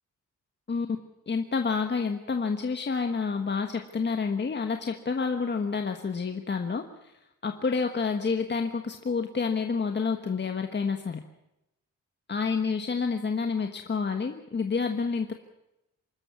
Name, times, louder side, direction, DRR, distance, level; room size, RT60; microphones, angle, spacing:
voice 1, 1.3-7.1 7.4-11.2 12.3-15.3, left 5 dB, 35° left, 5 dB, 1.4 m, -29 dB
25.5 x 13.5 x 9.6 m, 0.90 s
wide cardioid pair, 140°, 31 cm